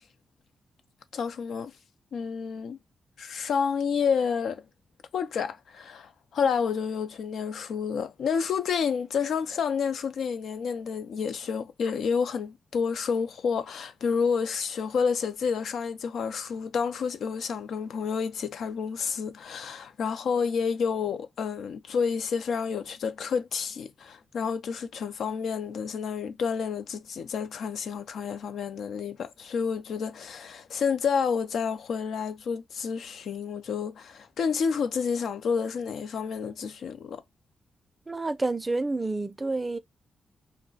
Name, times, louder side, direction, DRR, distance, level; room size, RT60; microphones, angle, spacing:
voice 1, 1.1-1.7 2.1-2.8 3.2-4.6 5.1-37.2, left 6 dB, 80° left, 0.4 m, -29 dB
voice 2, 38.1-39.8, right 2 dB, 25° right, 0.4 m, -29 dB
2.3 x 2.1 x 3.7 m
cardioid pair, 65°, 0 cm